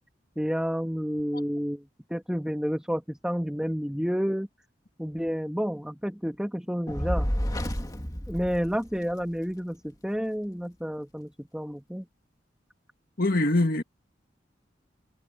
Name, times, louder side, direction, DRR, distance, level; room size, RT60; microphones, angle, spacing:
voice 1, 0.4-1.8 2.1-4.5 5.0-7.3 8.3-12.0, equal, 5° right, 1.8 m, -30 dB
Fire, 6.9-9.3, equal, 20° left, 2.4 m, -30 dB
voice 2, 13.2-13.8, left 2 dB, 55° left, 1.7 m, -23 dB
head